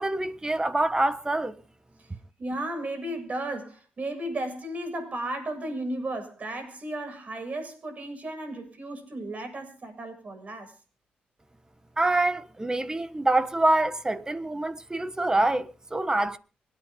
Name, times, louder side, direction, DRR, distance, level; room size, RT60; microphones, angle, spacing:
voice 1, 0.0-1.5 12.0-16.4, right 2 dB, 20° right, 1.3 m, -25 dB
voice 2, 2.0-10.7, right 1 dB, 45° right, 7.2 m, -34 dB
26.0 x 9.4 x 3.8 m
cardioid pair, 65°, 3 cm